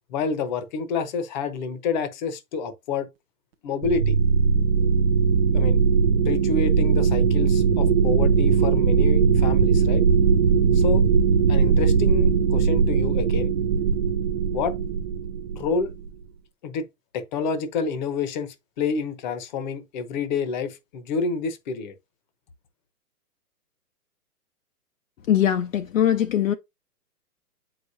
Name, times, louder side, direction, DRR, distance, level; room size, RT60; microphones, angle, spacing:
voice 1, 0.1-3.1 3.6-4.2 5.5-5.8 6.2-10.0 10.7-11.0 11.5-13.5 14.5-14.8 15.5-15.9 16.6-16.9 17.1-21.9, left 4 dB, 30° left, 0.8 m, -28 dB
sound 1, 3.8-16.1, right 5 dB, 45° right, 0.4 m, -20 dB
voice 2, 25.3-26.5, left 10 dB, 55° left, 0.6 m, -21 dB
7.8 x 4.9 x 2.6 m
hypercardioid pair, 150°, 47 cm